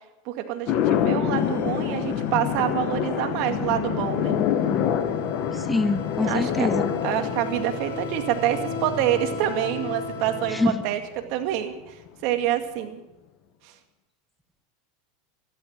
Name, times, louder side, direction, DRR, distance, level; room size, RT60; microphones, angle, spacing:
voice 1, 0.3-4.4 6.2-6.7 7.0-11.0 11.3-13.0 13.6-13.7, right 12 dB, 60° right, 7 dB, 2.1 m, -27 dB
sound 1, 0.7-11.0, left 9 dB, 50° left, 1.5 m, -27 dB
sound 2, 1.4-10.7, left 3 dB, 75° left, 3.9 m, -36 dB
voice 2, 5.5-6.8 10.5-10.8, left 2 dB, 5° left, 10 dB, 1.2 m, -25 dB
14.0 x 13.0 x 7.4 m, 0.99 s
hypercardioid pair, 100°, 0 cm